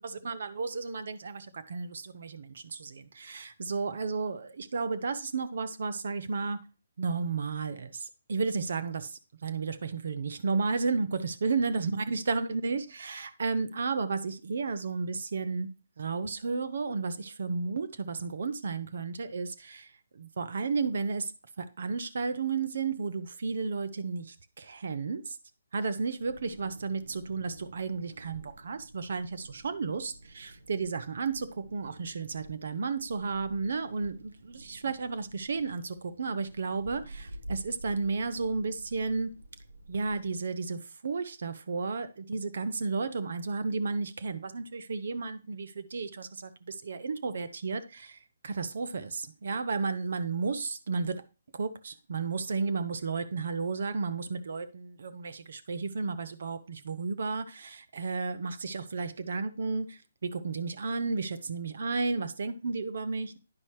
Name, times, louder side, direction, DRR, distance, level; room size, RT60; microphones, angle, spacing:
voice 1, 0.0-6.6 7.0-15.7 16.0-21.3 21.6-25.4 25.7-39.3 39.9-48.2 48.4-51.2 51.5-63.4, right 4 dB, 65° right, 11 dB, 0.8 m, -33 dB
Wind, 26.2-40.4, right 1 dB, 85° right, 1.0 m, -50 dB
9.6 x 5.5 x 3.1 m, 0.32 s
figure-of-eight pair, 145°, 0 cm